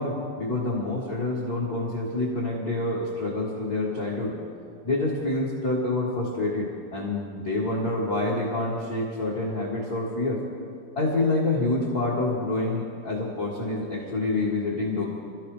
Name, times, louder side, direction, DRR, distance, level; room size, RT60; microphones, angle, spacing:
voice 1, 0.0-4.4 4.8-10.4 10.9-15.0, left 2 dB, 60° left, -5 dB, 0.9 m, -27 dB
27.5 x 15.0 x 3.3 m, 2.4 s
omnidirectional pair, 5.0 m